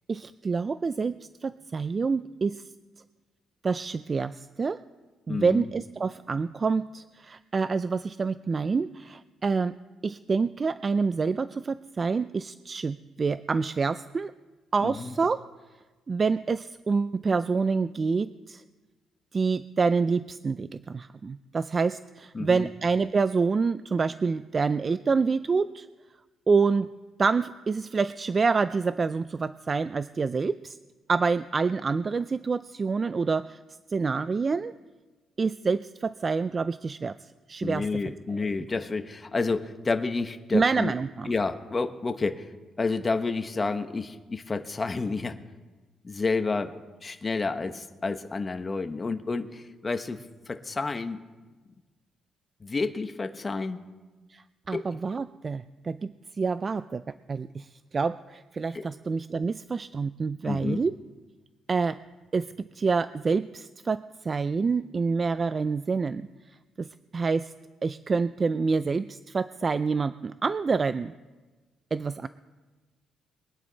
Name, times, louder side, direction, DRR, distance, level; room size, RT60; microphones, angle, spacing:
voice 1, 0.1-2.6 3.6-4.8 5.3-9.7 10.0-14.3 14.7-15.4 16.1-18.6 19.3-25.9 26.5-26.9 27.2-30.8 31.1-33.6 33.9-34.7 35.4-37.9 40.5-41.3 54.3-57.0 57.3-60.9 61.7-62.0 62.3-66.3 66.8-66.9 67.1-67.5 67.8-71.1 71.9-72.3, right 4 dB, 35° right, 14 dB, 0.4 m, -27 dB
voice 2, 5.3-5.7 14.8-15.1 22.3-22.7 37.6-40.9 41.3-42.5 42.8-45.4 46.0-46.7 47.0-51.2 52.6-53.8 54.7-55.0 58.7-58.9 60.4-60.8, left 3 dB, 30° left, 8 dB, 1.0 m, -30 dB
23.0 x 9.5 x 4.0 m, 1.3 s
cardioid pair, 90°, 0 cm